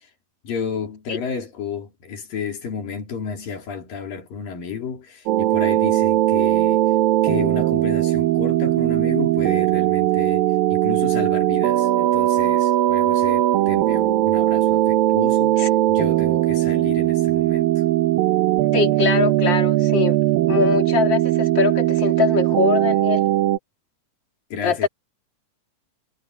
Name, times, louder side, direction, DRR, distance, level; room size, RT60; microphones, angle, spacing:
voice 1, 0.4-6.8 7.2-17.8 24.5-24.9, left 6 dB, 80° left, 5.5 m, -32 dB
sound 1, 5.3-23.6, right 14 dB, 85° right, 2.8 m, -19 dB
voice 2, 18.7-20.2 20.5-23.3 24.6-24.9, left 6 dB, 35° left, 3.1 m, -22 dB
omnidirectional pair, 3.9 m